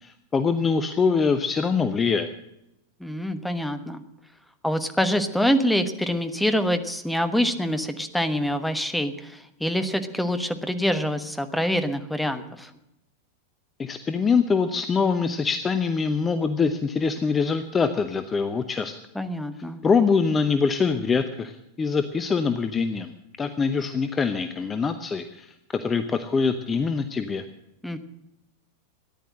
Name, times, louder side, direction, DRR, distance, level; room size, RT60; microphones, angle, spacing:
voice 1, 0.0-2.3 13.8-18.9 19.8-21.5 21.8-23.1 23.4-27.4, left 5 dB, 20° left, 9 dB, 0.8 m, -24 dB
voice 2, 3.0-4.0 4.6-12.7 19.1-19.8 27.8-28.0, equal, 5° left, 9 dB, 1.2 m, -25 dB
14.0 x 10.5 x 7.6 m, 0.86 s
figure-of-eight pair, 90°, 0 cm